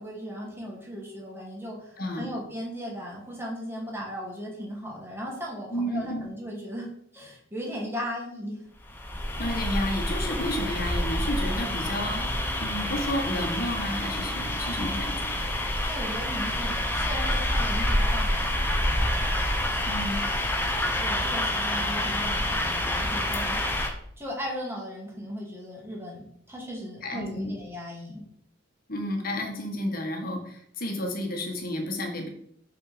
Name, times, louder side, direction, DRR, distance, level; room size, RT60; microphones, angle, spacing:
voice 1, 0.0-8.6 15.8-18.5 21.0-23.6 24.2-28.2, equal, 10° right, -3 dB, 2.4 m, -37 dB
voice 2, 2.0-2.3 5.7-6.2 9.4-15.4 19.9-20.2 27.0-27.5 28.9-32.3, left 1 dB, 45° left, 2 dB, 1.7 m, -31 dB
sound 1, 8.8-23.9, left 1 dB, 10° left, 1.0 m, -27 dB
6.5 x 5.6 x 5.1 m, 0.69 s
head